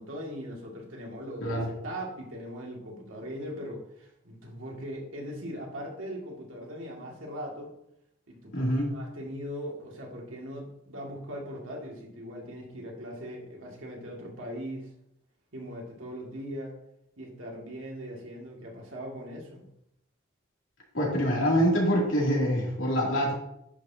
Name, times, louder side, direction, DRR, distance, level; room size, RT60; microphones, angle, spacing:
voice 1, 0.0-7.7 8.3-14.9 15.5-16.7 17.2-19.7, equal, 85° right, -2 dB, 2.1 m, -40 dB
voice 2, 8.5-8.9 20.9-23.3, equal, 85° left, -3 dB, 2.8 m, -25 dB
10.5 x 6.0 x 2.8 m, 0.79 s
head